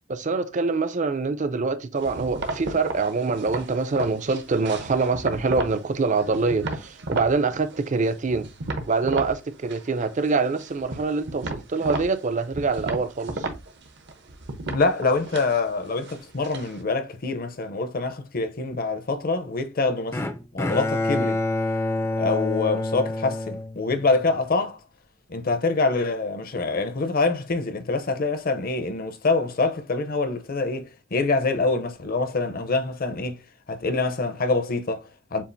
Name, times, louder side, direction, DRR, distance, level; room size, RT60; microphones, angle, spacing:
voice 1, 0.1-8.5 8.9-13.5, right 4 dB, 40° right, 0.5 m, -25 dB
sound 1, 2.0-5.8 6.2-7.3 7.7-9.4 9.6-10.3 10.6-16.8, right 2 dB, 65° right, 0.8 m, -34 dB
voice 2, 14.7-20.2 20.5-21.4 22.2-24.8 25.3-33.4 33.7-35.4, left 3 dB, 50° left, 0.7 m, -25 dB
Bowed string instrument, 20.1-24.3, left 2 dB, 15° left, 0.4 m, -27 dB
7.1 x 2.4 x 2.6 m
head